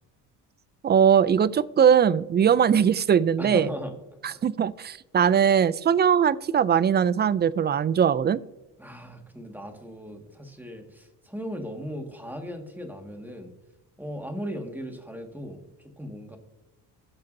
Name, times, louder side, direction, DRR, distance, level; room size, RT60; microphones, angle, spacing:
voice 1, 0.8-3.7 4.4-8.4, right 8 dB, 25° right, 18 dB, 0.3 m, -20 dB
voice 2, 3.4-4.0 4.3-4.4 8.8-13.5 14.0-16.4, equal, 5° right, 3 dB, 1.8 m, -37 dB
16.5 x 6.6 x 2.7 m, 1.1 s
cardioid pair, 85°, 41 cm